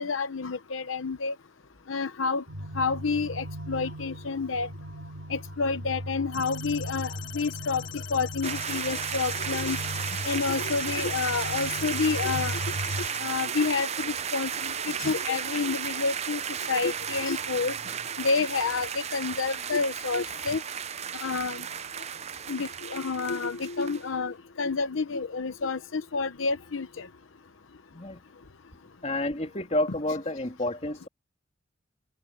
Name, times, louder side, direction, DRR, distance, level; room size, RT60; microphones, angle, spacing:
voice 1, 0.0-1.4 1.9-2.4 2.7-4.7 5.3-9.8 10.2-12.6 13.2-16.4 16.7-17.8 18.2-20.6 21.2-21.7 22.5-27.1, left 4 dB, 85° left, 0.8 m, -29 dB
sound 1, 2.5-13.1, equal, 70° right, 2.7 m, -38 dB
sound 2, 6.3-13.2, left 13 dB, 65° left, 4.4 m, -43 dB
sound 3, 8.4-24.1, right 8 dB, 35° right, 0.5 m, -34 dB
voice 2, 29.0-31.1, left 1 dB, 35° left, 3.0 m, -30 dB
open air
head